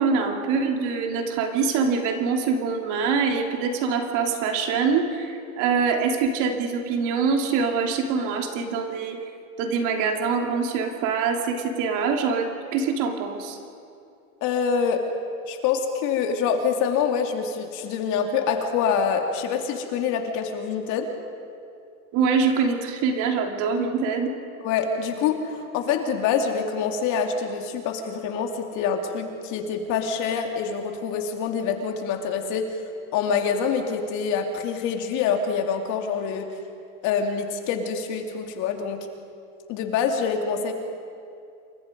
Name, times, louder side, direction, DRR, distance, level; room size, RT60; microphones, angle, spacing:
voice 1, 0.0-9.2 9.6-13.6 22.1-24.3, right 5 dB, 45° right, 3 dB, 3.0 m, -24 dB
voice 2, 14.4-15.0 15.5-21.1 24.6-32.8 33.1-36.5 37.0-39.1 39.7-40.7, left 6 dB, 45° left, 4 dB, 2.7 m, -26 dB
28.0 x 23.5 x 5.3 m, 2.5 s
supercardioid pair, 145°, 42 cm